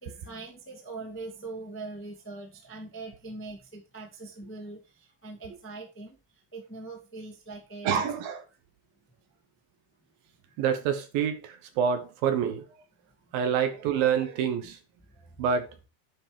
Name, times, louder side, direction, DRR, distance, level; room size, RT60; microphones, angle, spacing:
voice 1, 0.0-6.1 6.5-8.0 13.4-13.5 14.6-14.7, right 3 dB, 10° left, 0.8 m, -42 dB
voice 2, 7.8-8.4 10.6-12.6 13.3-14.8 15.4-15.7, right 7 dB, 70° right, 2.5 m, -27 dB
10.5 x 5.4 x 5.1 m
omnidirectional pair, 4.8 m